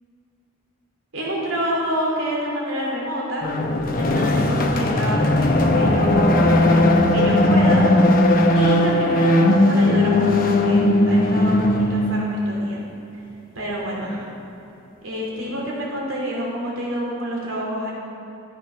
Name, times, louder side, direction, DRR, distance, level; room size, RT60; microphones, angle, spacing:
voice 1, 1.1-3.5 4.0-6.4 7.1-7.9 8.5-12.8 13.5-14.3 15.0-17.9, equal, 70° right, -3 dB, 3.0 m, -28 dB
sound 1, 3.4-12.6, left 1 dB, 40° left, 0.8 m, -17 dB
13.5 x 7.8 x 5.7 m, 2.9 s
head